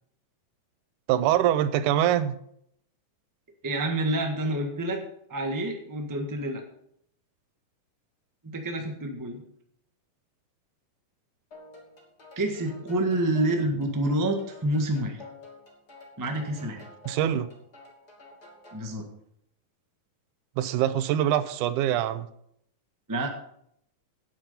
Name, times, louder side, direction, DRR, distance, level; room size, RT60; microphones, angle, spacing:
voice 1, 1.1-2.4 17.1-17.5 20.6-22.3, right 11 dB, 80° right, 14 dB, 2.1 m, -24 dB
voice 2, 3.6-5.0 5.3-6.6 8.4-9.4 12.3-15.2 16.2-16.9 18.7-19.0 23.1-23.4, right 1 dB, 15° right, 3 dB, 0.6 m, -28 dB
sound 1, 11.5-18.9, left 2 dB, 30° left, 3.0 m, -50 dB
10.5 x 9.2 x 5.7 m, 0.70 s
omnidirectional pair, 3.6 m